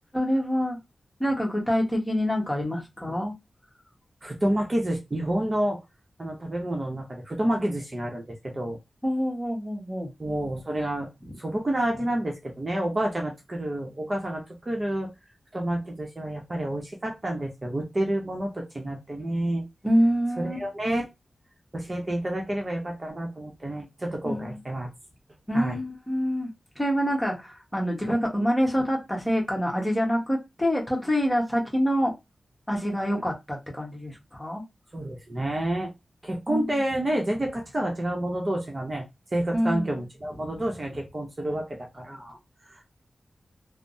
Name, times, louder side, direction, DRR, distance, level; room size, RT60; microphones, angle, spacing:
voice 1, 0.1-0.8 1.2-3.3 9.0-10.1 11.3-11.4 19.8-20.6 24.2-24.6 25.5-32.1 32.7-34.6 36.5-36.8 39.5-40.0, equal, 15° left, 1.1 m, -26 dB
voice 2, 4.2-5.8 6.2-8.8 10.2-11.1 11.4-15.1 15.5-19.6 20.4-21.0 21.7-24.9 25.5-25.8 34.9-35.9 36.2-39.1 39.3-42.4 42.6-42.9, right 1 dB, 35° right, 0.8 m, -29 dB
3.3 x 2.0 x 2.6 m
wide cardioid pair, 75°, 0 cm